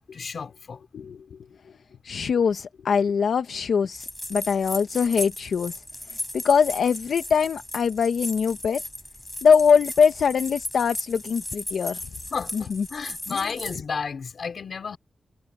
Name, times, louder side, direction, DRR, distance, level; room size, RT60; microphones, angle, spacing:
voice 1, 0.1-0.8 12.3-15.0, left 5 dB, 55° left, 4.4 m, -32 dB
voice 2, 2.0-5.8 6.3-8.8 9.4-12.0 12.5-12.9 13.3-13.4, left 6 dB, 75° left, 0.9 m, -22 dB
sound 1, 3.9-13.8, left 1 dB, 10° left, 6.9 m, -36 dB
wide cardioid pair, 170°, 0 cm